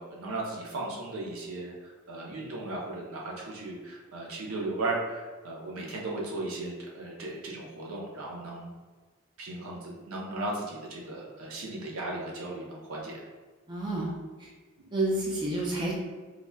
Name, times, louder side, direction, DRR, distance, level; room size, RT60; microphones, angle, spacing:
voice 1, 0.0-8.7 9.4-13.2, right 2 dB, 90° right, -2 dB, 0.7 m, -36 dB
voice 2, 13.7-14.1 14.4-14.5 14.9-15.9, right 2 dB, 20° right, -3 dB, 0.4 m, -29 dB
4.0 x 2.1 x 2.2 m, 1.4 s
head